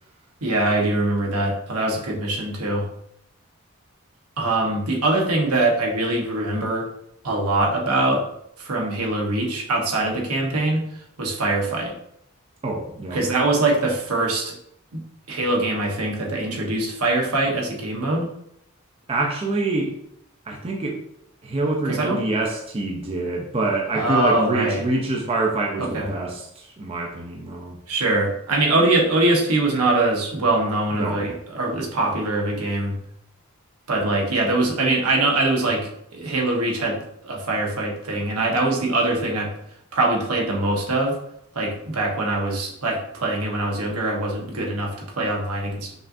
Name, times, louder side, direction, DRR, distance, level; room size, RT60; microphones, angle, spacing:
voice 1, 0.4-2.9 4.4-6.9 7.2-8.3 8.6-11.9 13.1-14.5 14.9-15.0 15.3-18.3 21.8-22.2 23.9-24.8 25.8-26.1 27.9-33.0 33.9-39.5 39.9-41.2 41.5-45.9, right 2 dB, 85° right, 0 dB, 1.0 m, -23 dB
voice 2, 12.6-13.2 19.1-20.0 20.5-21.0 21.4-27.8 31.0-31.3, right 2 dB, 25° right, 0 dB, 0.4 m, -26 dB
5.3 x 2.6 x 2.5 m, 0.74 s
head